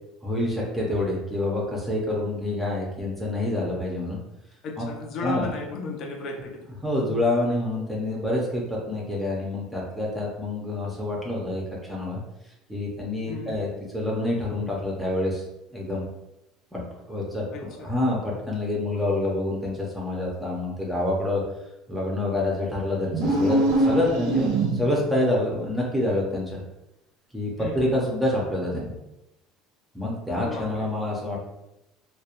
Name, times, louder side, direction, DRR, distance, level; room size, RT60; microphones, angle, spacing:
voice 1, 0.2-4.2 4.8-4.9 5.2-5.5 6.8-11.6 11.9-12.2 12.7-13.7 13.9-15.5 15.7-16.0 16.7-16.8 17.1-21.4 21.9-26.6 27.3-28.9 29.9-31.4, left 1 dB, 5° right, -4 dB, 0.5 m, -27 dB
voice 2, 4.6-6.7 13.3-13.6 17.5-17.9 27.6-27.9 30.4-30.9, left 3 dB, 50° left, 2 dB, 0.4 m, -35 dB
sound 1, 23.1-25.1, right 2 dB, 80° right, 0.6 m, -23 dB
2.3 x 2.1 x 2.8 m, 0.90 s
supercardioid pair, 120°, 0 cm